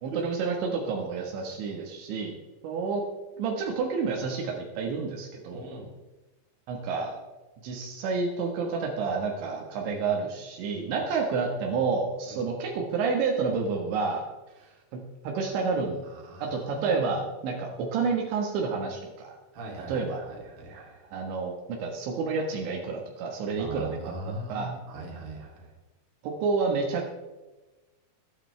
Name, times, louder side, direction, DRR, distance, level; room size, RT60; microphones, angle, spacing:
voice 1, 0.0-2.4 2.6-3.0 3.4-5.7 6.7-7.2 7.6-14.2 15.2-16.0 16.4-19.3 19.9-20.2 21.1-23.9 24.5-24.7 26.2-27.1, right 4 dB, 80° right, 0 dB, 3.8 m, -29 dB
voice 2, 5.5-5.9 10.9-11.1 12.3-12.4 14.6-14.8 16.0-17.1 19.5-21.1 23.6-25.7, right 2 dB, 55° right, -2 dB, 4.3 m, -40 dB
22.0 x 9.2 x 3.3 m, 1.1 s
omnidirectional pair, 5.2 m